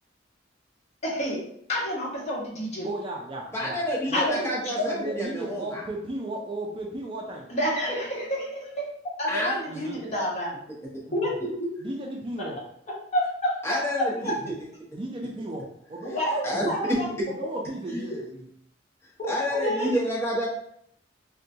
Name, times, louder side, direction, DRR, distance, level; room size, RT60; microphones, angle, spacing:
voice 1, 1.0-1.4 1.7-2.9 4.1-4.4 7.5-8.9 9.2-10.5 11.1-11.7 12.4-12.5 13.1-13.6 14.0-14.3 16.1-17.1 17.9-18.0 19.2-19.3 19.5-19.9, equal, 35° left, -5 dB, 1.0 m, -28 dB
voice 2, 2.8-3.8 4.1-7.5 9.7-10.0 11.1-11.3 11.8-12.6 14.9-15.6 15.9-16.1 16.5-16.7 17.3-18.4, right 1 dB, 25° right, 0 dB, 0.3 m, -35 dB
voice 3, 3.5-5.8 9.3-9.8 10.9-11.0 13.6-14.6 16.1-16.2 16.4-17.0 19.0-20.5, equal, 15° left, -5 dB, 0.9 m, -29 dB
3.6 x 2.2 x 2.6 m, 0.71 s
head